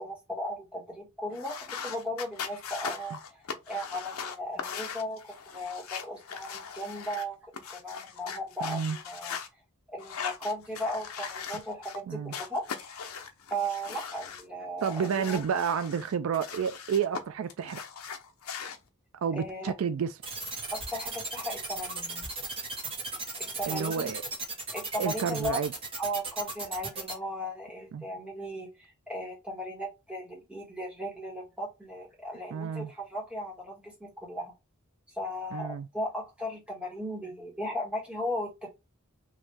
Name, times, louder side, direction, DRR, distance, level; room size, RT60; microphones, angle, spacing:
voice 1, 0.0-1.5 1.8-9.4 9.9-12.6 13.0-13.2 13.5-15.4 19.3-19.7 20.7-22.3 23.4-24.2 24.7-25.6 26.0-34.5 35.1-38.7, equal, 5° right, 1.4 m, -36 dB
sound 1, 1.3-9.5 10.0-12.0 12.3-14.4 14.8-17.2 17.5-18.8, left 6 dB, 80° left, 0.7 m, -40 dB
voice 2, 8.6-9.0 12.1-12.3 14.8-17.8 19.2-20.1 23.7-24.2 25.0-25.7 27.9-28.1 32.5-32.9 35.5-35.9, right 7 dB, 70° right, 0.3 m, -30 dB
sound 2, 20.2-27.1, right 3 dB, 25° right, 1.1 m, -36 dB
3.1 x 2.6 x 3.4 m
head